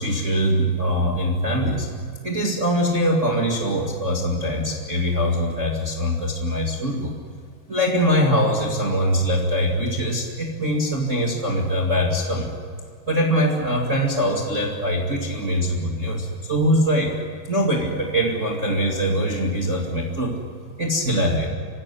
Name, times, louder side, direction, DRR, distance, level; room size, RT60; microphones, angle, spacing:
voice 1, 0.0-1.9 2.2-7.1 7.7-12.5 13.1-17.1 17.5-20.4 20.8-21.5, equal, 40° right, 0 dB, 1.0 m, -22 dB
26.0 x 16.0 x 9.8 m, 2.1 s
omnidirectional pair, 5.4 m